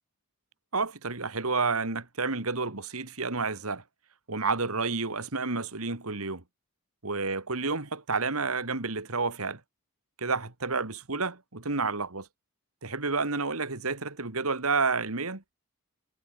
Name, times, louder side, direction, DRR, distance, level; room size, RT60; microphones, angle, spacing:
voice 1, 0.7-3.8 4.3-6.4 7.0-9.6 10.2-12.3 12.8-15.4, right 4 dB, 80° right, 2.4 m, -30 dB
head